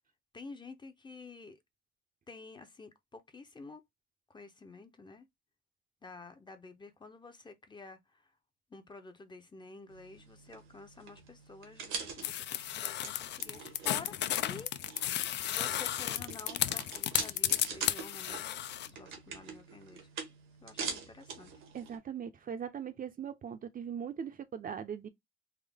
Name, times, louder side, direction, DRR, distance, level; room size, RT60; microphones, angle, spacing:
voice 1, 0.3-1.6 2.3-3.8 4.3-5.3 6.0-8.3 8.7-20.1 20.6-21.5, left 3 dB, 25° left, 0.6 m, -50 dB
sound 1, 9.9-22.0, right 5 dB, 85° right, 1.1 m, -45 dB
sound 2, 12.2-18.9, left 12 dB, 60° left, 0.4 m, -33 dB
voice 2, 21.7-25.1, right 8 dB, 45° right, 0.6 m, -40 dB
3.6 x 2.0 x 3.4 m
cardioid pair, 90°, 20 cm